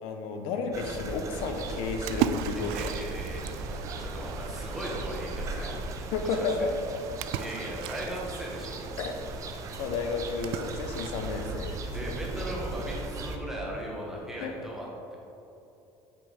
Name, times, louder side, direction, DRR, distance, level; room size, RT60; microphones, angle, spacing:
voice 1, 0.0-2.9 6.1-6.6 7.1-7.2 9.0-9.1 9.8-11.8 14.4-14.5, left 4 dB, 80° left, 4 dB, 0.9 m, -32 dB
sound 1, 0.7-13.4, right 3 dB, 35° right, 0.7 m, -38 dB
Splash splatter, 1.5-11.5, right 10 dB, 90° right, 0.4 m, -38 dB
voice 2, 2.5-5.8 6.2-6.7 7.3-8.9 11.8-15.2, equal, 5° right, -4 dB, 1.7 m, -38 dB
8.4 x 6.4 x 4.1 m, 2.9 s
cardioid pair, 155°, 9 cm